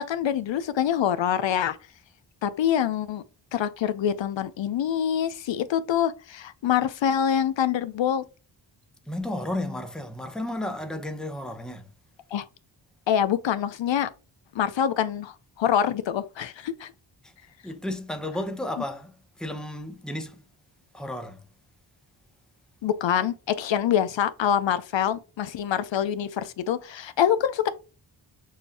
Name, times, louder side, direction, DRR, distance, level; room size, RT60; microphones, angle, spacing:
voice 1, 0.0-1.8 2.4-3.2 3.5-8.2 12.3-12.4 13.1-14.1 14.5-16.9 22.8-27.7, left 9 dB, 70° left, 0.5 m, -25 dB
voice 2, 9.1-11.9 17.2-17.3 17.6-20.4 20.9-21.4, left 1 dB, ahead, 0.7 m, -33 dB
6.5 x 2.6 x 2.7 m
cardioid pair, 65°, 47 cm